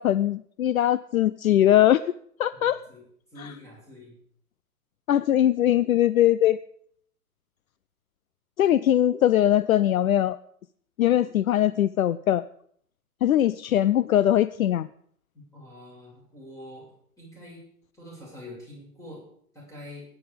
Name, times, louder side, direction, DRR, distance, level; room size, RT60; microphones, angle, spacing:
voice 1, 0.0-2.0 2.4-2.8 5.1-6.6 8.6-10.4 11.0-12.4 13.2-14.9, left 12 dB, 60° left, 16 dB, 0.6 m, -21 dB
voice 2, 2.5-3.0 3.3-4.2 15.3-17.6 17.9-19.3 19.5-20.0, left 1 dB, 5° left, -4 dB, 7.9 m, -45 dB
20.0 x 10.5 x 5.2 m, 0.63 s
figure-of-eight pair, 125°, 48 cm